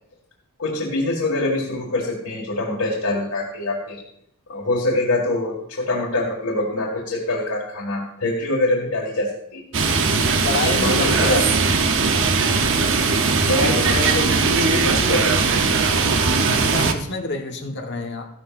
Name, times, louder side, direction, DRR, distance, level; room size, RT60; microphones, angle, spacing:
voice 1, 0.6-4.0 4.5-9.6 10.7-11.4 13.5-15.6, left 2 dB, 90° left, -4 dB, 2.0 m, -24 dB
sound 1, 9.7-16.9, right 4 dB, 55° right, 0.9 m, -19 dB
voice 2, 10.4-11.4 16.5-18.2, left 3 dB, 50° left, 2 dB, 1.4 m, -27 dB
14.0 x 11.0 x 2.6 m, 0.73 s
head